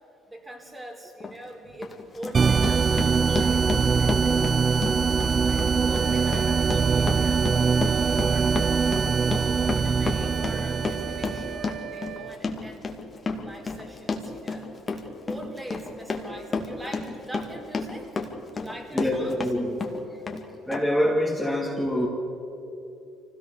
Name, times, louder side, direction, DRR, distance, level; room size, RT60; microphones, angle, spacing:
voice 1, 0.3-4.4 5.3-7.5 8.2-8.6 9.1-12.9 13.4-14.7 15.3-18.2 18.5-19.4, right 1 dB, 15° right, 2 dB, 4.1 m, -42 dB
Run, 1.2-1.3 1.8-19.5 19.8-20.4 20.7-20.8, left 4 dB, 35° left, 2.4 m, -32 dB
sound 1, 2.3-11.7, right 5 dB, 35° right, 0.4 m, -23 dB
Wind instrument woodwind instrument, 5.9-12.4, right 8 dB, 60° right, 1.1 m, -37 dB
voice 2, 18.9-19.8 20.7-22.1, left 1 dB, 5° left, -2 dB, 2.7 m, -25 dB
24.5 x 17.0 x 6.9 m, 2.9 s
supercardioid pair, 70°, 0 cm